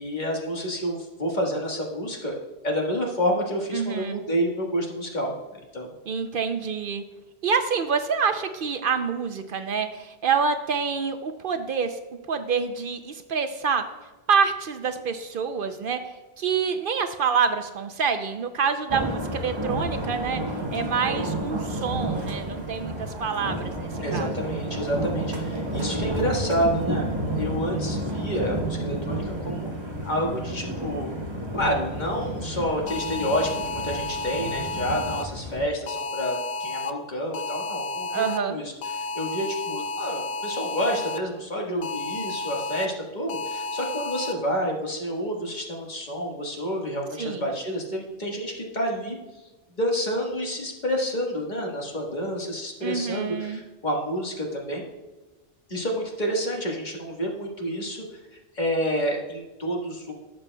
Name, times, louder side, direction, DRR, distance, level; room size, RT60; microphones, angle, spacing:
voice 1, 0.0-5.9 24.0-27.0 27.3-29.7 30.0-31.1 31.5-49.2 49.8-54.8 55.7-58.2 58.5-60.1, equal, 45° left, -1 dB, 1.6 m, -29 dB
voice 2, 3.7-4.2 6.1-7.0 7.4-12.0 12.3-13.8 14.3-16.0 16.4-20.4 20.7-24.3 38.1-38.6 47.2-47.4 52.8-53.6, right 6 dB, 60° right, 8 dB, 0.7 m, -27 dB
sound 1, 18.9-35.7, right 1 dB, 30° right, 0.9 m, -31 dB
sound 2, 32.9-35.2 35.9-36.9 37.3-38.4 38.8-41.2 41.8-42.9 43.3-44.3, left 3 dB, 70° left, 0.8 m, -32 dB
12.0 x 7.2 x 2.2 m, 1.2 s
omnidirectional pair, 1.1 m